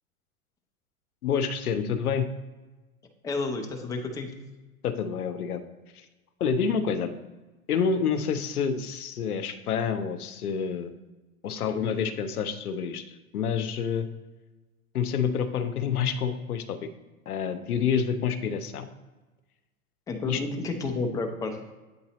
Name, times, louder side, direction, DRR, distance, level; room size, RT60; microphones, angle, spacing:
voice 1, 1.2-2.3 4.8-5.6 5.9-6.1 6.4-7.1 7.7-10.9 11.4-14.1 14.9-16.9 17.3-18.9 20.2-20.4, left 7 dB, 90° left, 11 dB, 0.7 m, -28 dB
voice 2, 3.2-4.3 20.1-21.6, left 3 dB, 10° left, 3 dB, 0.5 m, -30 dB
8.1 x 4.0 x 2.9 m, 1.2 s
hypercardioid pair, 105°, 43 cm